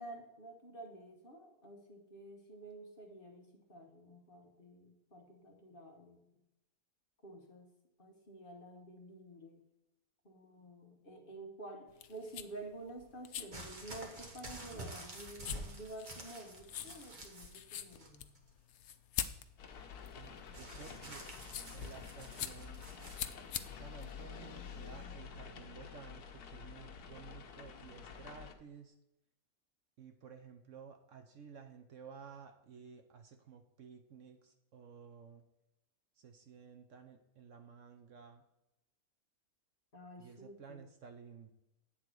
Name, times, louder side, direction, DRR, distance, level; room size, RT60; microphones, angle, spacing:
voice 1, 0.0-6.2 7.2-7.7 8.0-9.6 10.2-18.3 39.9-40.8, right 2 dB, 40° left, 1 dB, 1.5 m, -50 dB
sound 1, 11.9-25.0, left 10 dB, 65° left, 0.7 m, -46 dB
sound 2, 13.5-17.6 17.9-18.5 20.5-23.2 24.1-24.2, right 1 dB, 35° right, 1.5 m, -49 dB
sound 3, 19.6-28.5, left 6 dB, 85° left, 1.3 m, -49 dB
voice 2, 20.1-21.2 21.7-22.8 23.7-28.9 30.0-35.4 36.2-38.4 40.2-41.5, right 6 dB, 60° right, 6 dB, 1.0 m, -54 dB
8.8 x 3.9 x 6.0 m, 0.89 s
omnidirectional pair, 1.6 m